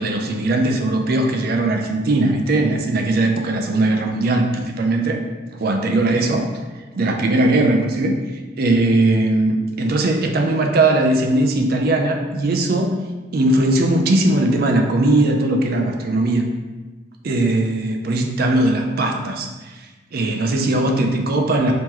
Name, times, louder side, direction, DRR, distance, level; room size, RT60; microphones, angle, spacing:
voice 1, 0.0-5.2 5.5-6.5 6.9-8.2 8.6-12.9 13.3-16.5 17.2-19.7 20.1-21.7, right 2 dB, 55° right, 3 dB, 0.4 m, -19 dB
3.6 x 2.9 x 3.0 m, 1.2 s
head